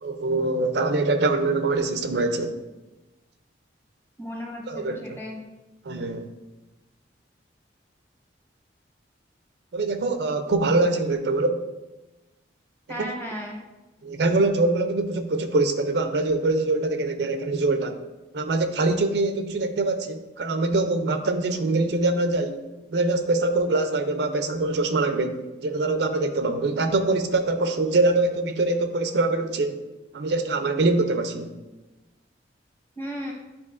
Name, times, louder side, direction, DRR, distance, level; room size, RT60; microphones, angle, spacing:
voice 1, 0.0-2.5 4.7-5.2 5.9-6.3 9.7-11.6 13.0-13.1 14.0-18.0 18.3-22.6 22.9-29.8 30.1-31.5, right 2 dB, 60° right, 8 dB, 0.4 m, -24 dB
voice 2, 4.2-5.4 12.9-13.6 33.0-33.3, equal, 10° left, -1 dB, 0.9 m, -35 dB
9.7 x 4.2 x 2.4 m, 1.1 s
head